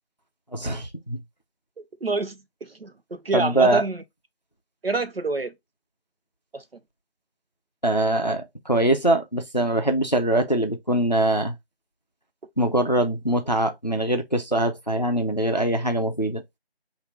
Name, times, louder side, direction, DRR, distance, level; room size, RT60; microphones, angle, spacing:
voice 1, 0.5-1.2 3.3-3.8 7.8-11.5 12.6-16.4, right 1 dB, 45° left, 0.5 m, -23 dB
voice 2, 2.0-4.0 4.8-5.5 6.5-6.6, right 3 dB, 70° right, 0.7 m, -27 dB
3.8 x 2.6 x 3.1 m
figure-of-eight pair, 180°, 31 cm